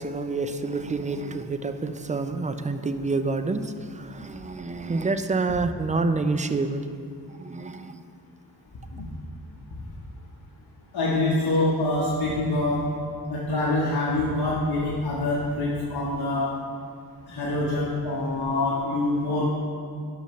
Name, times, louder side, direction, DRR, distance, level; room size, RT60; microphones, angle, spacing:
voice 1, 0.0-6.8 7.3-8.0, right 3 dB, 20° right, 9 dB, 0.4 m, -28 dB
voice 2, 10.9-12.8 13.3-16.5 17.3-19.4, left 2 dB, 65° left, -6 dB, 1.2 m, -25 dB
11.5 x 5.8 x 3.1 m, 2.3 s
cardioid pair, 60°, 41 cm